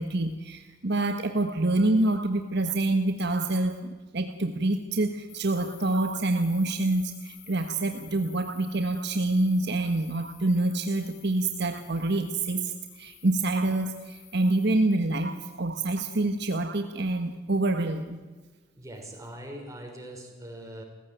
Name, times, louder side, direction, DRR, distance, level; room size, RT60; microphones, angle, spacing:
voice 1, 0.0-18.2, right 2 dB, 60° right, 7 dB, 1.4 m, -27 dB
sound 1, 5.3-14.7, left 11 dB, 90° left, 3.8 m, -52 dB
voice 2, 18.8-20.8, right 1 dB, 15° right, 2 dB, 5.7 m, -42 dB
29.0 x 16.0 x 9.2 m, 1.3 s
head